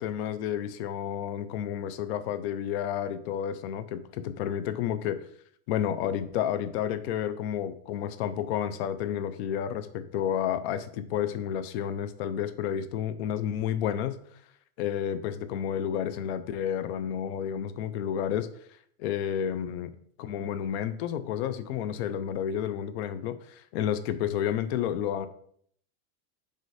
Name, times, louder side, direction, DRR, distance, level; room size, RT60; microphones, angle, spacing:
voice 1, 0.0-5.2 5.7-14.2 14.8-18.5 19.0-19.9 20.2-25.3, left 9 dB, 50° left, 12 dB, 0.5 m, -31 dB
5.2 x 4.9 x 4.1 m, 0.62 s
supercardioid pair, 170°, 43 cm